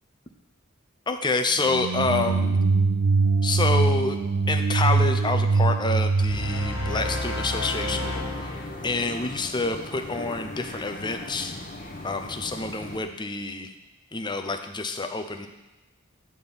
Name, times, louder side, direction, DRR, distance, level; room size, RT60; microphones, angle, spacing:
voice 1, 1.1-2.6 3.4-4.2 4.5-11.6 12.0-13.7 14.1-15.5, left 3 dB, 20° left, 6 dB, 0.6 m, -28 dB
sound 1, 1.6-7.6, right 4 dB, 60° right, 0.4 m, -23 dB
sound 2, 6.2-9.5, left 2 dB, 70° left, 1.6 m, -32 dB
sound 3, 6.9-13.0, left 2 dB, 40° left, 1.0 m, -39 dB
9.7 x 3.8 x 6.9 m, 1.0 s
head